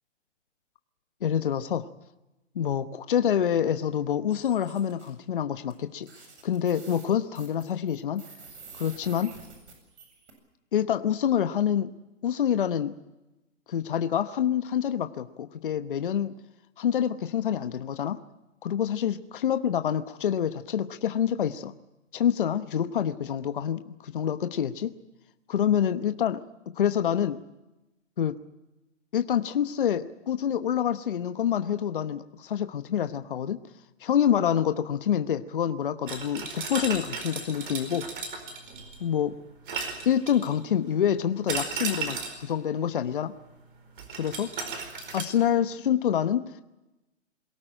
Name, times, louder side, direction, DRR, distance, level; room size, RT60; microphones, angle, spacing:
voice 1, 1.2-1.9 2.5-6.1 6.4-8.2 8.7-9.3 10.7-11.9 12.2-12.9 13.7-16.3 16.8-18.2 18.6-21.7 22.1-24.9 25.5-26.4 26.8-27.4 28.2-28.3 29.1-33.6 34.0-38.1 39.0-39.3 40.0-43.3 44.2-44.5 45.1-46.4, left 9 dB, 45° left, 9 dB, 1.0 m, -27 dB
sound 1, 4.3-5.1 5.7-5.8 6.0-10.3, right 4 dB, 65° right, 7.8 m, -49 dB
sound 2, 36.1-39.1 39.7-40.7 41.5-42.5 44.0-45.2, right 4 dB, 45° right, 4.7 m, -35 dB
22.5 x 18.0 x 8.9 m, 0.99 s
hypercardioid pair, 165°, 38 cm